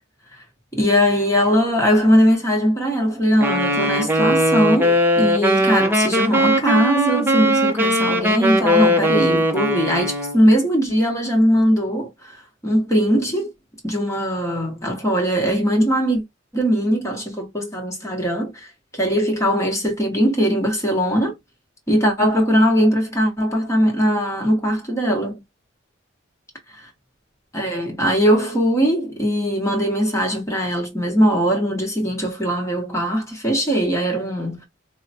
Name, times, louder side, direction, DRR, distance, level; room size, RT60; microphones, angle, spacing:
voice 1, 0.7-12.4 12.6-13.5 13.8-16.2 16.5-21.4 21.9-25.4 26.7-26.9 27.5-34.7, equal, 15° left, 1.0 m, -20 dB
Wind instrument woodwind instrument, 3.4-10.4, equal, 10° right, 0.6 m, -19 dB
4.7 x 2.1 x 2.7 m
head